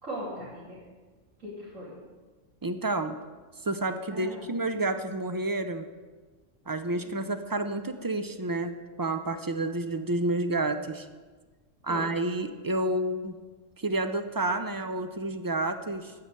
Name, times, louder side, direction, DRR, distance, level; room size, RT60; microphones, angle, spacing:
voice 1, 0.0-0.8 1.4-1.9 4.1-4.5 7.0-7.3 11.9-12.1, equal, 80° right, -9 dB, 3.3 m, -39 dB
voice 2, 2.6-3.2 3.6-5.9 6.7-11.1 11.8-13.4 13.8-16.1, right 2 dB, 35° right, 9 dB, 0.3 m, -30 dB
13.5 x 5.8 x 8.1 m, 1.4 s
omnidirectional pair, 1.3 m